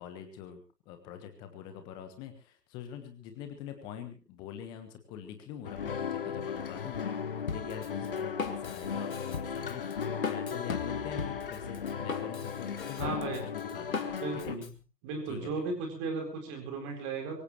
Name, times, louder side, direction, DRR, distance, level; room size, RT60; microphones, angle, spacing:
voice 1, 0.0-7.0 7.4-14.5 15.3-15.7, left 9 dB, 10° left, 8 dB, 1.3 m, -44 dB
sound 1, 5.6-14.6, left 7 dB, 35° left, 1.1 m, -36 dB
Drum kit, 7.5-14.7, left 4 dB, 55° left, 2.6 m, -39 dB
voice 2, 13.0-13.4 14.2-14.7 15.0-17.4, right 4 dB, 20° right, 3 dB, 4.5 m, -35 dB
24.0 x 15.5 x 3.2 m, 0.32 s
figure-of-eight pair, 145°, 48 cm